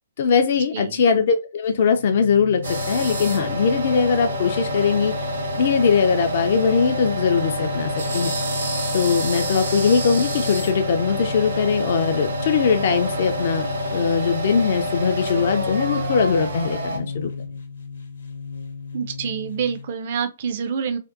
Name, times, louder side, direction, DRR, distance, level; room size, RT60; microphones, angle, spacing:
voice 1, 0.2-5.1 5.6-8.3 8.9-17.5, left 6 dB, 50° left, 0.3 m, -21 dB
voice 2, 0.7-1.0 18.9-21.0, right 7 dB, 45° right, 0.4 m, -27 dB
sound 1, 1.6-19.9, left 5 dB, 65° left, 0.7 m, -34 dB
sound 2, 2.6-17.0, right 1 dB, 70° right, 0.8 m, -28 dB
2.5 x 2.2 x 2.3 m
figure-of-eight pair, 125°, 0 cm